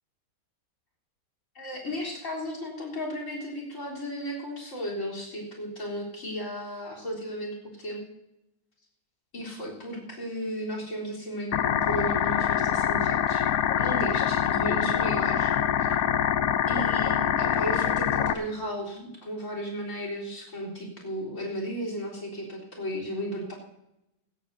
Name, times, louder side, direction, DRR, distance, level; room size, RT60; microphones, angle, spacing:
voice 1, 1.6-8.0 9.3-13.4 13.7-15.5 16.7-23.5, equal, 60° left, -1 dB, 4.1 m, -34 dB
sound 1, 11.5-18.3, left 9 dB, 90° left, 1.2 m, -25 dB
19.5 x 16.5 x 2.7 m, 0.89 s
omnidirectional pair, 1.5 m